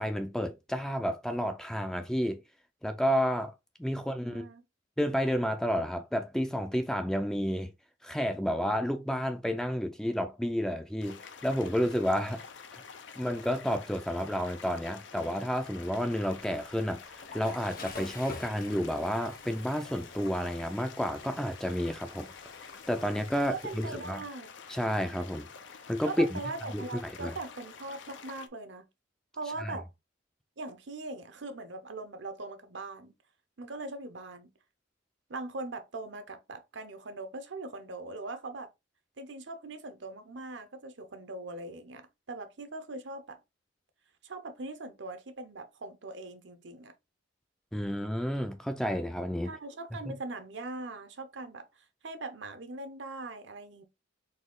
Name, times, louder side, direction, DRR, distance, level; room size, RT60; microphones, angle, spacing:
voice 1, 0.0-2.4 2.8-3.5 3.8-4.5 5.0-7.7 8.0-12.4 13.2-22.3 22.9-24.2 24.7-25.5 25.9-26.4 26.7-27.4 29.6-29.8 47.7-49.5 50.1-50.2, equal, 5° left, 0.4 m, -31 dB
voice 2, 4.2-4.6 23.5-24.5 26.0-28.8 29.3-29.9 30.6-33.1 33.6-34.5 35.3-38.7 39.2-43.4 44.2-46.9 49.4-51.7 52.0-53.8, right 2 dB, 65° right, 0.8 m, -41 dB
sound 1, 11.0-28.5, left 6 dB, 70° left, 0.6 m, -49 dB
Water / Toilet flush, 15.6-23.9, left 4 dB, 50° left, 1.0 m, -49 dB
4.2 x 2.8 x 3.7 m
head